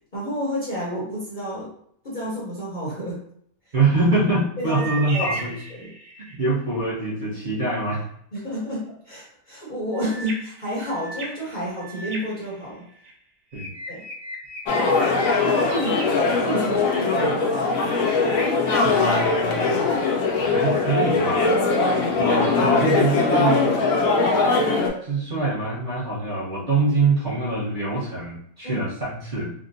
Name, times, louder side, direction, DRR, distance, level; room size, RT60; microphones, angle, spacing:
voice 1, 0.1-1.7 2.0-3.2 3.7-3.8 4.6-5.9 8.3-12.9 13.9-14.0 15.0-17.5 28.6-28.9, equal, 40° left, -7 dB, 0.8 m, -30 dB
voice 2, 3.7-5.5 6.2-8.1 13.5-13.7 18.8-20.1 20.5-21.5 22.2-23.8 25.0-29.5, right 2 dB, 40° right, -9 dB, 0.9 m, -24 dB
sound 1, 4.7-6.5 9.9-13.1 13.5-17.0, right 1 dB, 80° right, 1.2 m, -36 dB
sound 2, 14.7-24.9, left 3 dB, 75° left, 1.0 m, -21 dB
3.5 x 2.1 x 2.5 m, 0.66 s
omnidirectional pair, 1.6 m